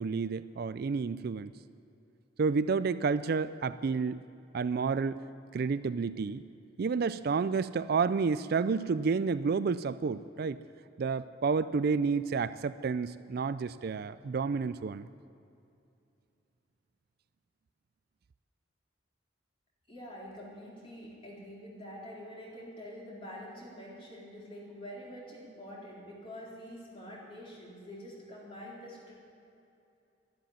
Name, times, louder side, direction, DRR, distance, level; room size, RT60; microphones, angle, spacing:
voice 1, 0.0-1.5 2.4-4.2 4.5-5.2 5.5-6.4 6.8-10.6 11.0-15.1, right 5 dB, 55° right, 14 dB, 0.4 m, -30 dB
voice 2, 19.9-29.1, equal, 30° left, -5 dB, 4.1 m, -46 dB
13.0 x 11.5 x 9.2 m, 2.7 s
head